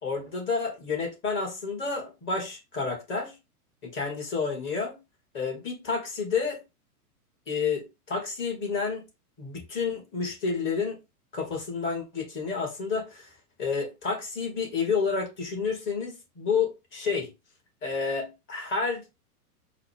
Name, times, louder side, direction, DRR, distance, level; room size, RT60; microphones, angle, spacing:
voice 1, 0.0-3.3 4.0-5.0 5.3-6.6 7.5-9.0 9.4-11.0 11.3-13.3 13.6-17.3 17.8-19.2, left 5 dB, 25° left, 1.6 m, -30 dB
4.6 x 2.3 x 3.5 m
hypercardioid pair, 115°, 46 cm